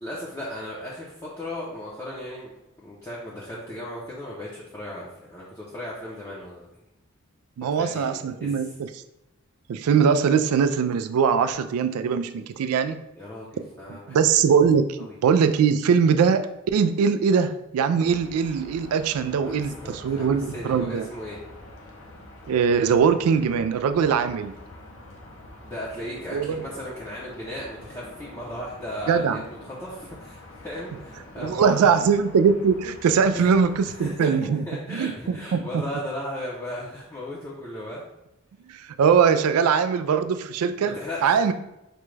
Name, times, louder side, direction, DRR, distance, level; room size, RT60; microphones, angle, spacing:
voice 1, 0.0-2.5 2.8-6.7 7.7-8.7 13.2-13.5 13.7-14.3 15.0-15.2 19.5-19.6 19.8-21.4 25.6-32.0 33.3-33.5 33.9-38.0 40.8-41.5, left 1 dB, 15° left, -7 dB, 0.6 m, -36 dB
voice 2, 7.6-8.9 9.7-13.0 14.1-21.1 22.5-24.5 26.3-26.6 29.1-29.4 31.4-34.6 34.9-35.8 38.7-40.9 41.2-41.5, right 6 dB, 85° right, 11 dB, 0.3 m, -21 dB
sound 1, 18.0-34.1, left 1 dB, 60° left, 0.7 m, -46 dB
5.0 x 2.2 x 3.1 m, 0.90 s
head